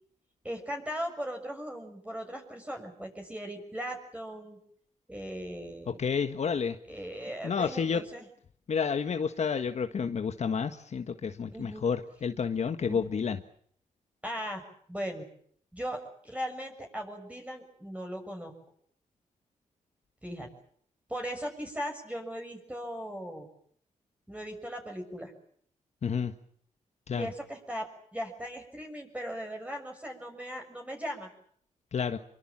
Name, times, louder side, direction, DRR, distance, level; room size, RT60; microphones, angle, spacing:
voice 1, 0.4-4.6 5.1-6.0 6.9-8.3 11.5-11.8 12.9-13.0 14.2-14.6 14.9-15.3 15.7-18.5 20.2-20.5 21.1-23.5 24.3-25.3 27.1-31.3, equal, 10° right, 3 dB, 6.7 m, -38 dB
voice 2, 5.9-6.8 7.4-8.0 8.7-13.4 26.0-26.3 27.1-27.3 31.9-32.2, left 6 dB, 55° left, 7 dB, 1.6 m, -30 dB
25.5 x 24.0 x 7.5 m, 0.63 s
cardioid pair, 75°, 13 cm